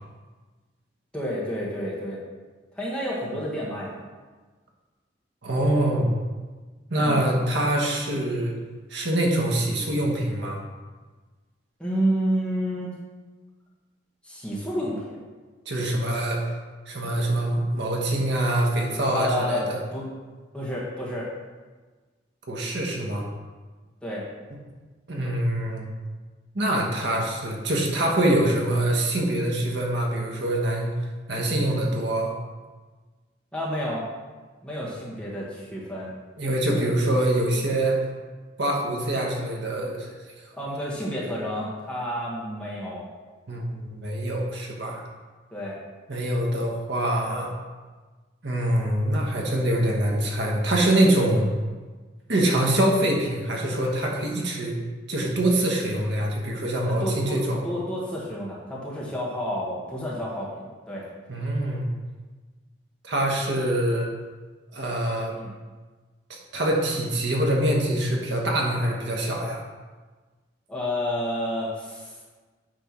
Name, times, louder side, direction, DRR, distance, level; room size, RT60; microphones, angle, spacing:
voice 1, 1.1-2.3 2.7-4.0 7.0-7.2 11.8-12.9 14.2-15.2 19.1-20.1 20.5-21.3 24.0-24.2 33.5-34.1 34.6-36.1 36.7-36.9 40.5-43.1 45.5-45.8 56.8-61.1 65.3-65.5 70.7-72.2, equal, 5° left, -6 dB, 1.6 m, -30 dB
voice 2, 5.4-6.1 6.9-8.5 8.9-10.6 15.7-16.4 16.9-19.8 22.5-23.2 25.1-25.9 26.5-30.9 31.3-32.3 36.4-38.0 38.6-40.1 43.5-45.0 46.1-47.5 48.4-51.4 52.3-54.8 55.1-57.6 61.3-61.9 63.0-64.1 64.7-65.3 66.3-69.6, right 1 dB, 65° right, -1 dB, 1.2 m, -24 dB
9.0 x 3.5 x 5.9 m, 1.3 s
head